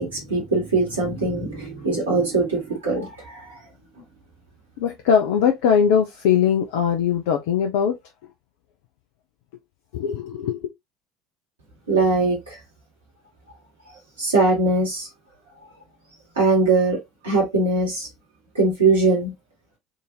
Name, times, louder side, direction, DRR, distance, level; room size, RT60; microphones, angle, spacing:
voice 1, 0.0-3.6 11.9-12.6 14.2-15.1 16.4-17.0 17.2-18.1 18.5-19.3, right 3 dB, 75° right, 1.7 m, -21 dB
voice 2, 4.8-8.0 9.9-10.7, left 7 dB, 65° left, 0.4 m, -20 dB
3.7 x 2.6 x 2.7 m
figure-of-eight pair, 60°, 0 cm